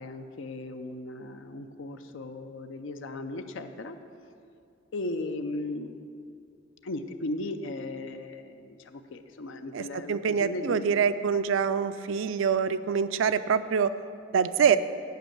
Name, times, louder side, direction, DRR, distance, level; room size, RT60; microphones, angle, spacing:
voice 1, 0.0-4.0 4.9-6.0 6.8-10.9, left 2 dB, 80° left, 8 dB, 0.5 m, -36 dB
voice 2, 9.7-13.9 14.3-14.8, right 6 dB, 85° right, 13 dB, 0.4 m, -25 dB
9.2 x 5.2 x 7.8 m, 2.4 s
head